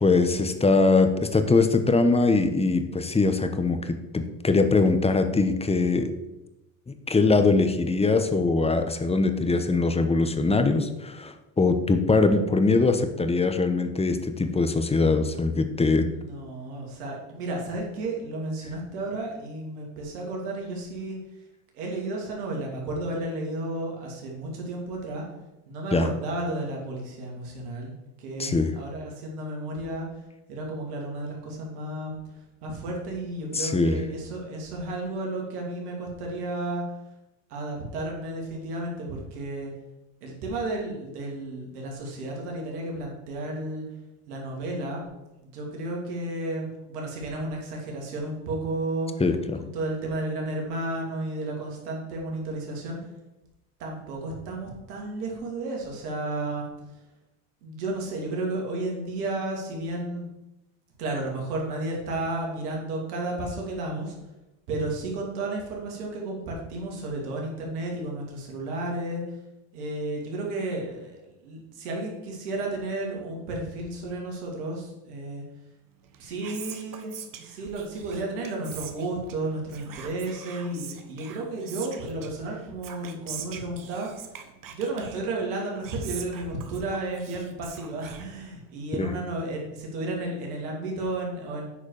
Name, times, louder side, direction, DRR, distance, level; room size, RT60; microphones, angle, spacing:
voice 1, 0.0-6.1 6.9-16.1 25.9-26.1 28.4-28.7 33.5-34.0 49.2-49.6 89.0-89.1, left 3 dB, 15° left, 8 dB, 1.0 m, -22 dB
voice 2, 16.1-21.2 21.7-25.2 25.7-27.9 28.2-30.1 30.5-32.2 32.6-36.8 37.5-39.7 40.2-43.8 44.3-45.0 45.4-49.1 49.7-53.0 53.8-56.7 57.6-60.3 61.0-64.1 64.7-69.2 69.7-75.4 76.2-77.1 77.4-84.1 84.6-91.7, right 2 dB, 85° right, -1 dB, 2.7 m, -32 dB
Whispering, 76.0-88.8, right 8 dB, 45° right, 1.2 m, -44 dB
8.7 x 4.9 x 6.4 m, 0.98 s
hypercardioid pair, 80°, 45 cm